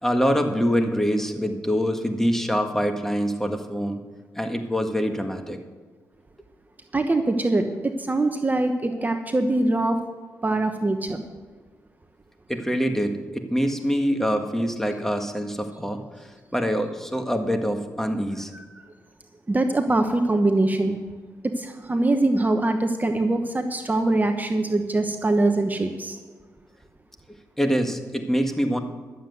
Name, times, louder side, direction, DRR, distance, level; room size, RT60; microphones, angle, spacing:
voice 1, 0.0-4.0 4.3-5.6 12.5-18.5 27.6-28.8, equal, 5° left, 5 dB, 1.6 m, -25 dB
voice 2, 6.9-10.0 10.4-11.2 18.5-18.6 19.5-21.0 21.6-26.2, right 2 dB, 25° right, 6 dB, 1.0 m, -23 dB
12.0 x 7.7 x 8.0 m, 1.5 s
cardioid pair, 60°, 6 cm